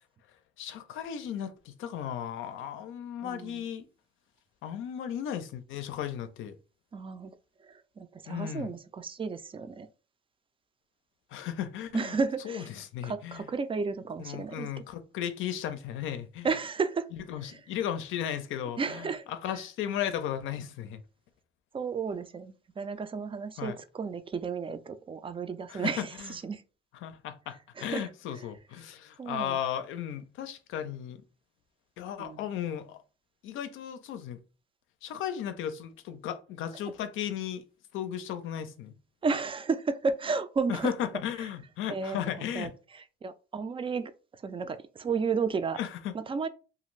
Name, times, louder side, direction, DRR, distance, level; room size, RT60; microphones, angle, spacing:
voice 1, 0.6-3.8 4.6-6.6 8.3-8.8 11.3-12.2 12.4-13.5 14.2-16.5 17.1-21.0 23.6-23.8 25.7-26.3 27.0-31.2 32.0-33.0 33.4-34.4 35.0-37.6 37.9-38.9 40.7-42.7 45.8-46.1, left 10 dB, 85° left, 0.5 m, -35 dB
voice 2, 3.2-3.6 6.9-9.9 11.9-12.7 13.0-14.8 16.4-17.1 17.4-17.6 18.8-19.3 21.7-26.6 27.8-28.1 29.2-29.6 32.2-32.5 39.2-40.9 41.9-44.1 44.4-45.8 46.1-46.5, right 5 dB, 25° right, 0.3 m, -33 dB
2.5 x 2.4 x 3.1 m
cardioid pair, 90°, 20 cm